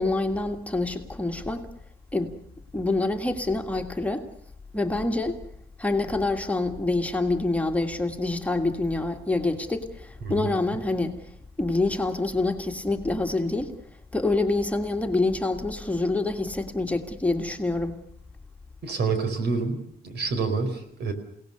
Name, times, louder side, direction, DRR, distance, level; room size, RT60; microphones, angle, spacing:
voice 1, 0.0-1.7 2.1-2.3 2.7-4.3 4.7-5.4 5.8-11.2 11.6-13.7 14.1-18.0, left 2 dB, 10° left, 4 dB, 1.7 m, -26 dB
voice 2, 18.8-19.8 20.0-21.1, right 4 dB, 80° right, 8 dB, 4.6 m, -27 dB
29.5 x 18.0 x 6.8 m, 0.69 s
wide cardioid pair, 165°, 17 cm